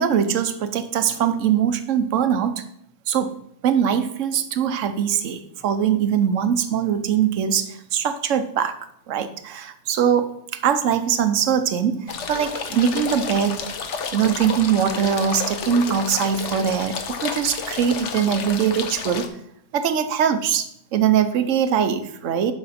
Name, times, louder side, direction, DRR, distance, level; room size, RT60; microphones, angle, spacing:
voice 1, 0.0-2.6 3.1-3.4 3.6-8.8 9.1-13.7 14.1-19.3 19.7-22.5, right 8 dB, 60° right, 10 dB, 1.0 m, -22 dB
sound 1, 12.1-19.3, left 6 dB, 55° left, 1.0 m, -31 dB
11.5 x 5.1 x 4.2 m, 0.72 s
omnidirectional pair, 1.7 m